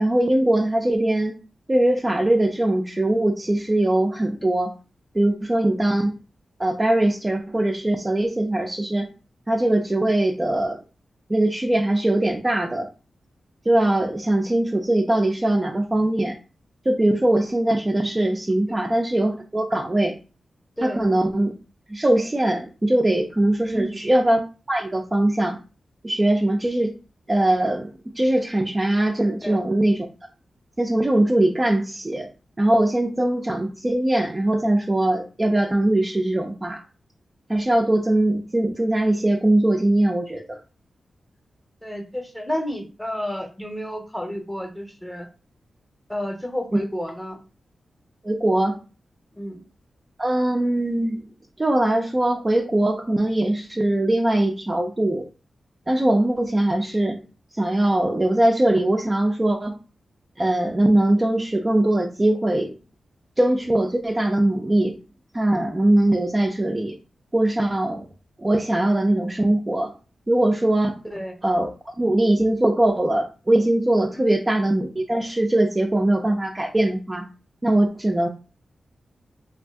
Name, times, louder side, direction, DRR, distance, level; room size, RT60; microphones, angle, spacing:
voice 1, 0.0-1.4 1.7-4.7 5.1-6.1 6.6-9.1 9.5-10.8 11.3-12.9 13.7-16.4 16.9-20.1 20.8-21.5 21.9-24.4 24.7-25.6 26.0-26.9 27.3-30.1 30.8-32.3 32.6-36.8 37.5-40.6 48.2-48.8 50.2-51.2 51.6-55.3 55.9-57.2 57.6-59.7 60.4-62.7 63.4-65.0 65.3-66.9 67.3-68.0 68.4-69.9 70.3-71.0 71.4-77.2 77.6-78.3, right 1 dB, 25° right, 2 dB, 0.4 m, -21 dB
voice 2, 41.8-45.3 46.1-47.4 49.3-49.6 71.0-71.3 74.2-74.3, equal, 5° left, 4 dB, 0.8 m, -31 dB
2.6 x 2.4 x 3.4 m, 0.33 s
cardioid pair, 65°, 0 cm